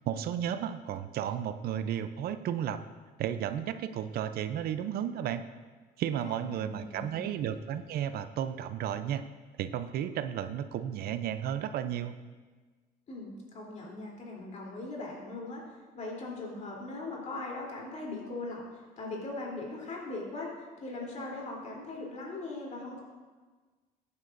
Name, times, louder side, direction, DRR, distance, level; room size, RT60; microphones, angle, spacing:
voice 1, 0.0-2.8 3.2-5.4 6.0-9.2 9.6-12.1, right 9 dB, 65° right, 11 dB, 0.5 m, -33 dB
voice 2, 6.4-7.4 13.1-23.0, left 2 dB, 45° left, -2 dB, 3.3 m, -40 dB
14.5 x 9.6 x 2.6 m, 1.4 s
cardioid pair, 110°, 17 cm